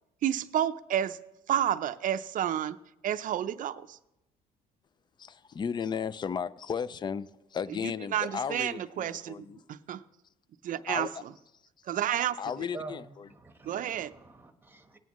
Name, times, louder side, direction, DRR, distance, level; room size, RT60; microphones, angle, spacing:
voice 1, 0.2-1.2 1.5-2.8 3.0-4.0 7.8-9.3 9.7-10.0 10.6-11.1 11.9-12.4 13.7-14.1, right 10 dB, 50° right, 12 dB, 0.5 m, -30 dB
voice 2, 5.2-9.6 10.9-11.2 12.4-13.3, left 7 dB, 25° left, 18 dB, 0.4 m, -35 dB
voice 3, 12.7-15.0, right 3 dB, 10° right, 7 dB, 1.1 m, -46 dB
18.5 x 9.1 x 3.0 m, 0.90 s
cardioid pair, 110°, 17 cm